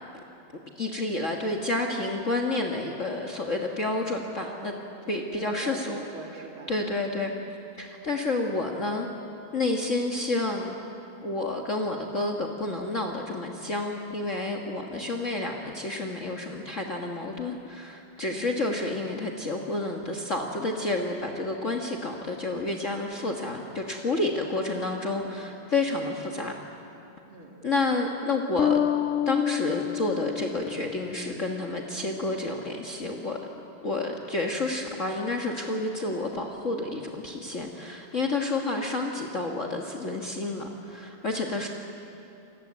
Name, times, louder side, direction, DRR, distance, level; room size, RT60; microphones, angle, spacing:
voice 1, 0.8-4.7 5.1-6.0 6.7-9.1 9.5-10.8 11.2-26.5 27.6-28.8 29.3-33.4 33.8-41.7, left 2 dB, 40° left, 1 dB, 1.8 m, -30 dB
voice 2, 4.5-6.7 7.1-7.4 18.3-18.7 24.3-25.3 27.3-27.6 41.4-41.7, right 2 dB, 80° right, 0 dB, 3.1 m, -43 dB
Bass guitar, 28.6-31.6, left 10 dB, 80° left, 0.7 m, -28 dB
29.0 x 19.0 x 8.6 m, 2.8 s
omnidirectional pair, 2.2 m